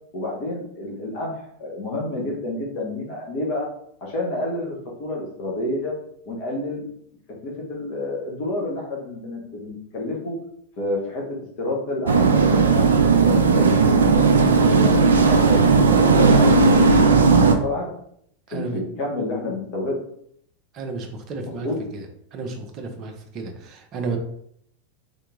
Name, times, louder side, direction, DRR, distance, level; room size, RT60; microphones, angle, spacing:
voice 1, 0.1-3.7 4.0-5.9 6.3-6.8 7.4-10.3 10.8-12.9 13.2-14.1 14.4-17.9 18.5-18.7 19.0-20.0 21.4-21.8, left 2 dB, 45° left, -2 dB, 1.2 m, -29 dB
sound 1, 12.1-17.5, right 4 dB, 70° right, 0.4 m, -16 dB
voice 2, 18.5-18.8 20.7-21.7 21.9-22.0 22.3-24.2, right 4 dB, 35° right, 3 dB, 0.7 m, -32 dB
3.5 x 2.8 x 3.6 m, 0.69 s
figure-of-eight pair, 90°, 0 cm